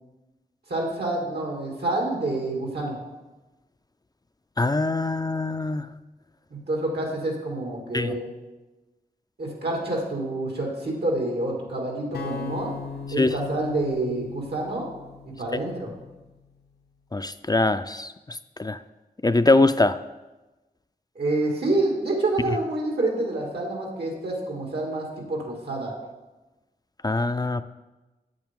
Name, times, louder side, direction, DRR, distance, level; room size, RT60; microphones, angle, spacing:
voice 1, 0.7-3.0 6.5-8.3 9.4-12.7 13.1-14.9 15.2-15.9 21.2-25.9, right 2 dB, 85° right, -2 dB, 2.3 m, -28 dB
voice 2, 4.6-5.9 7.9-8.1 13.2-13.3 17.1-18.8 19.2-20.0 27.0-27.6, left 2 dB, 25° left, 11 dB, 0.4 m, -23 dB
sound 1, 12.1-16.3, left 5 dB, 90° left, 1.0 m, -38 dB
8.9 x 8.2 x 3.7 m, 1.1 s
wide cardioid pair, 55°, 16 cm